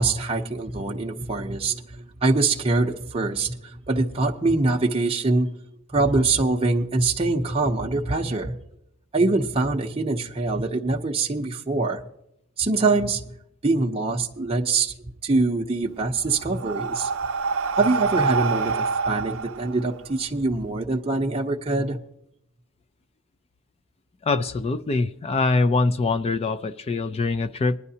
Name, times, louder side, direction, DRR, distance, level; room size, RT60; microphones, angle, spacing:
voice 1, 0.0-5.5 5.9-8.5 9.1-12.0 12.6-13.2 13.6-14.9 15.2-17.1 17.7-22.0, right 3 dB, 25° right, 0.7 m, -24 dB
Breathing, 15.8-20.6, right 4 dB, 65° right, 0.6 m, -27 dB
voice 2, 24.2-27.8, left 3 dB, 25° left, 0.3 m, -23 dB
20.0 x 11.0 x 2.8 m
head